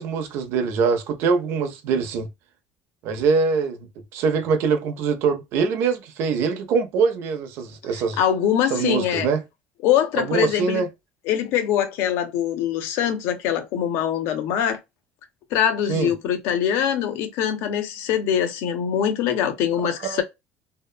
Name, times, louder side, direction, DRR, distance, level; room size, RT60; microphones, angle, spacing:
voice 1, 0.0-2.3 3.0-8.2 8.7-9.4 10.2-10.9 15.9-16.1 20.0-20.2, right 5 dB, 70° right, 0.6 m, -23 dB
voice 2, 8.2-9.3 9.8-10.8 11.3-14.8 15.5-20.2, left 9 dB, 75° left, 0.7 m, -23 dB
2.8 x 2.1 x 2.3 m
cardioid pair, 115°, 4 cm